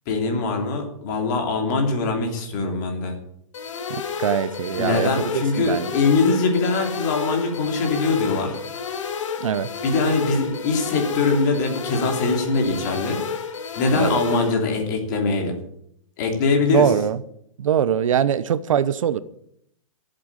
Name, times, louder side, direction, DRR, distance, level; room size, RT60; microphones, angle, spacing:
voice 1, 0.1-3.1 4.8-8.6 9.8-13.2 13.7-15.6 16.2-16.9, left 3 dB, 35° left, 3.0 m, -22 dB
sound 1, 3.5-14.5, left 6 dB, 65° left, 2.0 m, -30 dB
voice 2, 3.9-5.9 9.4-9.7 14.0-14.2 16.7-17.2 17.6-19.2, right 9 dB, 70° right, 0.9 m, -22 dB
13.0 x 7.9 x 8.8 m
hypercardioid pair, 175°, 17 cm